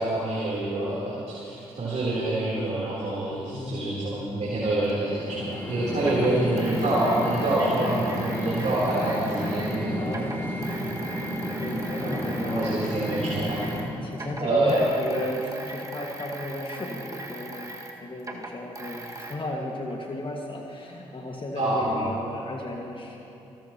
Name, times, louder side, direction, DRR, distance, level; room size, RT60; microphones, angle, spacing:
voice 1, 0.0-10.1 12.0-13.6 14.4-14.8 21.6-22.0, right 2 dB, 50° right, -9 dB, 3.9 m, -27 dB
voice 2, 3.5-4.1 6.2-6.5 10.0-10.2 11.6-12.7 14.0-23.2, left 1 dB, 35° left, 0 dB, 2.0 m, -34 dB
sound 1, 4.9-13.9, equal, 15° left, 3.3 m, -31 dB
sound 2, 4.9-5.0 6.0-9.8 10.1-13.9 14.1-19.3, right 2 dB, 25° right, 2.0 m, -40 dB
28.0 x 13.5 x 3.1 m, 2.8 s
hypercardioid pair, 40°, 14 cm